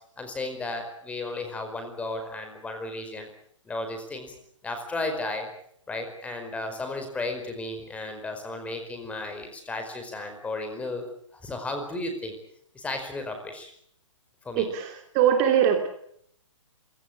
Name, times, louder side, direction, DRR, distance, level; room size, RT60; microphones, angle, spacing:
voice 1, 0.2-3.3 3.6-4.3 4.6-5.5 5.9-11.0 11.3-12.4 12.7-13.7 14.4-14.7, left 2 dB, 10° left, 6 dB, 4.8 m, -34 dB
voice 2, 14.5-15.9, right 9 dB, 30° right, 5 dB, 2.9 m, -22 dB
27.5 x 17.5 x 8.6 m, 0.69 s
hypercardioid pair, 145°, 16 cm